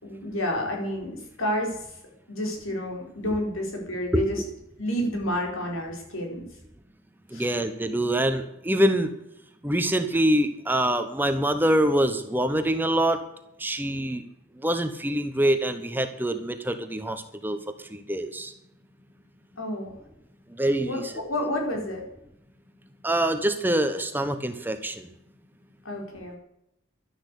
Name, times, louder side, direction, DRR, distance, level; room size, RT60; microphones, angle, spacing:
voice 1, 0.0-1.8 2.3-4.4 4.8-6.4 7.3-7.5 19.6-19.9 20.8-22.0 25.8-26.4, left 1 dB, 90° left, 1 dB, 4.9 m, -30 dB
voice 2, 7.3-9.1 9.6-13.2 13.6-14.2 14.6-17.6 17.9-18.5 20.6-21.0 23.0-25.1, right 1 dB, 10° right, 8 dB, 1.1 m, -25 dB
12.5 x 10.5 x 8.4 m, 0.80 s
head